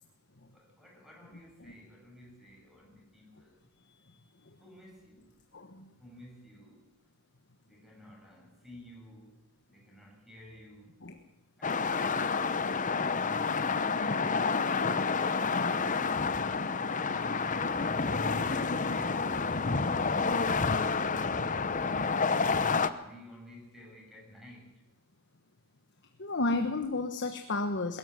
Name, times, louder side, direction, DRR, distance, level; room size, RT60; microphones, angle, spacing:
voice 1, 0.5-3.7 4.6-5.4 6.0-6.9 7.6-11.0 11.6-14.0 22.9-24.8, equal, ahead, 0 dB, 6.5 m, -53 dB
voice 2, 5.5-5.9 11.0-11.2 26.2-28.0, left 2 dB, 50° left, 6 dB, 1.3 m, -32 dB
sound 1, 11.6-22.9, left 4 dB, 35° left, 0.9 m, -29 dB
21.5 x 14.0 x 9.4 m, 0.88 s
head